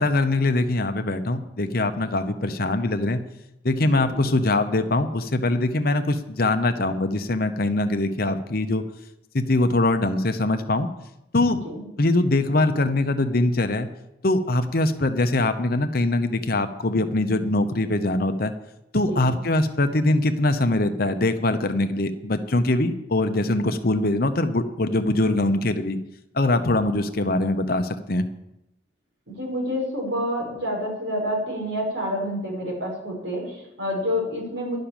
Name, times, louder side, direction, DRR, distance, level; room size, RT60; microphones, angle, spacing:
voice 1, 0.0-3.2 3.6-8.8 9.3-10.9 11.3-11.6 12.0-13.9 14.2-18.5 18.9-26.0 26.3-28.3, left 2 dB, 55° left, 8 dB, 0.9 m, -22 dB
voice 2, 3.8-4.2 11.5-11.8 19.1-19.2 29.3-34.8, equal, 85° right, -3 dB, 6.0 m, -28 dB
11.5 x 6.5 x 9.0 m, 0.87 s
head